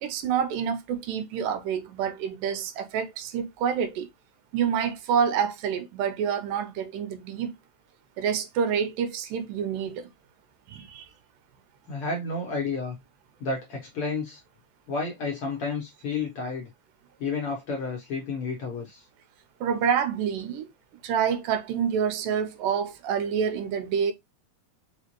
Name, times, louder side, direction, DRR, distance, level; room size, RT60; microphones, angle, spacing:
voice 1, 0.0-4.1 4.5-7.5 8.2-10.1 10.7-11.1 19.6-20.7 21.0-24.1, right 7 dB, 85° right, 2.4 m, -27 dB
voice 2, 11.9-13.0 13.4-14.4 14.9-16.7 17.2-19.0, left 4 dB, 60° left, 1.5 m, -31 dB
5.5 x 2.4 x 2.9 m
omnidirectional pair, 3.7 m